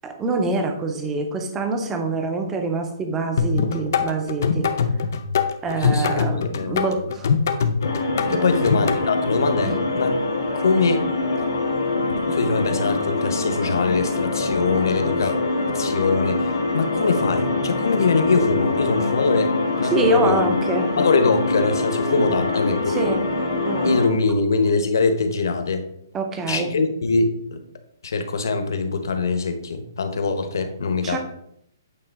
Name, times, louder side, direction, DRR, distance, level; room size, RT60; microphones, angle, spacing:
voice 1, 0.0-4.7 5.6-7.3 8.3-8.7 9.6-9.8 19.8-20.9 22.9-23.2 23.6-23.9 26.1-26.7 31.0-31.2, right 2 dB, 10° right, 5 dB, 0.6 m, -25 dB
sound 1, 3.4-9.0, left 6 dB, 45° left, 0.6 m, -22 dB
voice 2, 5.8-6.2 6.6-6.8 8.3-10.1 10.5-11.0 12.3-15.4 15.7-20.4 20.9-23.1 23.8-25.9 26.5-27.6 28.0-31.2, left 4 dB, 65° left, 7 dB, 1.1 m, -23 dB
sound 2, 7.8-24.1, left 3 dB, 85° left, 2.3 m, -24 dB
8.6 x 3.4 x 4.7 m, 0.74 s
hypercardioid pair, 180°, 2 cm